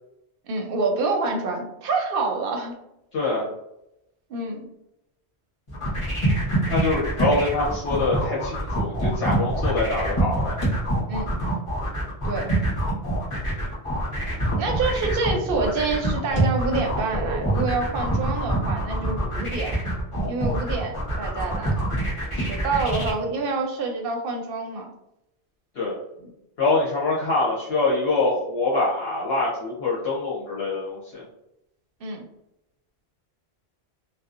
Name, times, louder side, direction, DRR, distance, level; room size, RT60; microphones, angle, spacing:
voice 1, 0.4-2.7 4.3-4.7 11.1-11.3 12.2-12.5 14.6-19.8 20.3-21.7 22.4-24.9 32.0-32.2, right 3 dB, 65° right, 2 dB, 0.7 m, -27 dB
voice 2, 3.1-3.5 6.7-10.6 25.7-25.9 26.6-31.2, left 3 dB, 70° left, -7 dB, 0.9 m, -24 dB
sound 1, 5.7-23.1, right 1 dB, 30° left, 0.9 m, -25 dB
2.6 x 2.1 x 2.4 m, 0.85 s
omnidirectional pair, 1.1 m